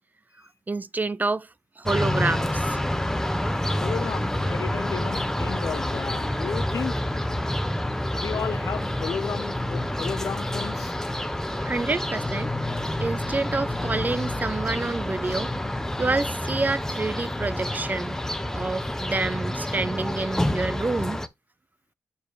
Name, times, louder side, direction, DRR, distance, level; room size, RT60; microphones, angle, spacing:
voice 1, 0.7-1.5 1.8-2.8 11.6-12.5 13.0-15.5 16.0-18.2 18.5-21.2, right 3 dB, 30° right, 0.5 m, -28 dB
sound 1, 1.9-21.3, left 1 dB, 10° left, 0.8 m, -28 dB
voice 2, 3.8-7.0 8.1-10.9, left 7 dB, 60° left, 0.7 m, -33 dB
7.0 x 4.5 x 4.0 m
cardioid pair, 65°, 6 cm